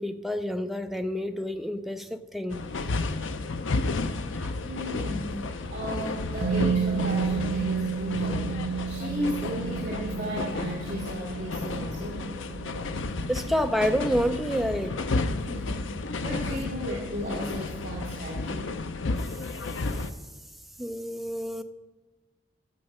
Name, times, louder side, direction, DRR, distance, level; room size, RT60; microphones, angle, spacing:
voice 1, 0.0-2.9 4.3-4.6 13.3-15.0 20.8-21.6, equal, ahead, 0.4 m, -29 dB
sound 1, 2.5-20.1, left 3 dB, 85° left, 0.6 m, -32 dB
voice 2, 4.6-12.3 15.3-18.8, equal, 40° right, 1.9 m, -35 dB
Musical instrument, 6.4-14.3 14.6-14.8, right 6 dB, 85° right, 0.9 m, -32 dB
12.0 x 6.9 x 5.4 m
head